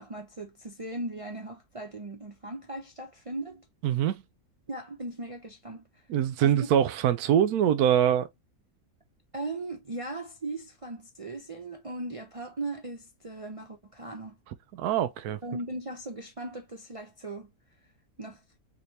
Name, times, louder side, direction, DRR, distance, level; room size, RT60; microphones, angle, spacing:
voice 1, 0.0-3.7 4.7-6.0 6.4-6.5 9.3-14.4 15.4-17.5 18.2-18.4, right 2 dB, 55° right, 0.3 m, -38 dB
voice 2, 3.8-4.2 6.1-8.3 14.7-15.4, right 9 dB, 85° right, 1.1 m, -24 dB
4.1 x 3.2 x 2.7 m
omnidirectional pair, 1.6 m